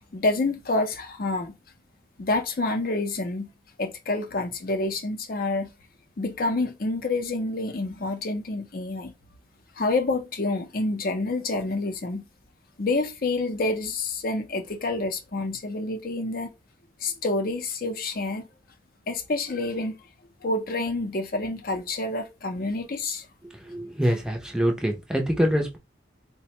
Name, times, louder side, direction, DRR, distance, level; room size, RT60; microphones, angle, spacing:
voice 1, 0.1-1.6 2.2-3.5 3.8-5.7 6.2-9.1 9.8-12.3 12.8-16.5 17.0-18.5 19.1-19.9 20.4-23.3, left 2 dB, 50° left, 0.5 m, -28 dB
voice 2, 23.7-25.8, equal, 5° right, 0.5 m, -25 dB
4.1 x 2.1 x 2.9 m
head